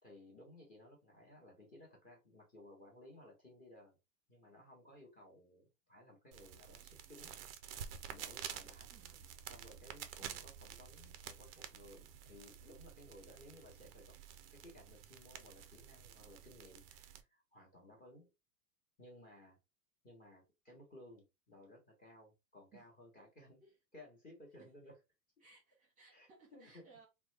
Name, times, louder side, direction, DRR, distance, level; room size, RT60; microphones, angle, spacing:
voice 1, 0.0-4.0 4.3-7.4 8.1-8.9 9.4-14.2 14.5-18.3 19.0-19.6 20.0-23.6 23.9-25.0 26.1-26.9, left 1 dB, 15° left, 1.1 m, -59 dB
sound 1, 6.3-17.2, right 9 dB, 40° right, 0.4 m, -50 dB
voice 2, 8.9-9.3 10.2-10.5 22.7-22.9 23.6-23.8 24.6-24.7 25.4-27.1, right 5 dB, 15° right, 1.0 m, -63 dB
3.4 x 2.2 x 3.2 m
hypercardioid pair, 140°, 49 cm